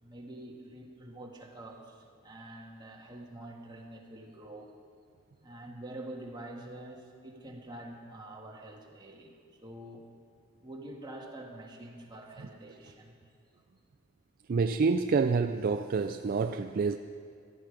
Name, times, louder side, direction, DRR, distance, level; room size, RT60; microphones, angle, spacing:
voice 1, 0.0-4.7 5.4-9.3 9.6-10.1 10.6-13.2, right 1 dB, 20° right, 1.6 m, -46 dB
voice 2, 14.5-17.0, right 4 dB, 45° right, 0.4 m, -27 dB
16.5 x 12.0 x 4.9 m
head